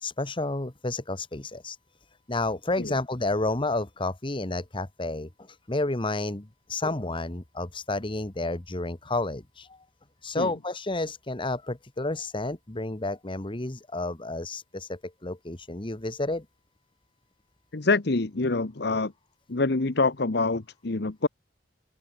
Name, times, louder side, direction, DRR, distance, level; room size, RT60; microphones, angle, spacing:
voice 1, 0.0-1.8 2.3-5.3 5.7-9.8 10.2-16.4, left 2 dB, 30° left, 1.4 m, -31 dB
voice 2, 17.7-19.1 19.5-21.3, left 3 dB, 60° left, 1.1 m, -26 dB
open air
head